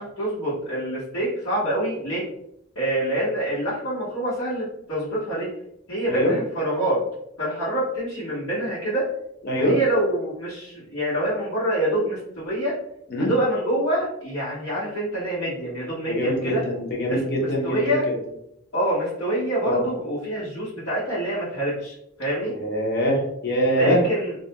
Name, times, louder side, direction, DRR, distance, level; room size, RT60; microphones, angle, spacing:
voice 1, 0.0-2.2 2.7-5.5 5.9-7.0 7.4-9.1 9.5-12.7 13.2-16.6 17.1-18.1 18.7-22.5 23.8-24.3, right 1 dB, 75° left, -13 dB, 1.1 m, -26 dB
voice 2, 9.4-9.8 13.1-13.3 16.0-18.0 19.6-19.8 22.6-24.0, equal, 50° left, -2 dB, 0.7 m, -23 dB
2.3 x 2.2 x 2.8 m, 0.76 s
head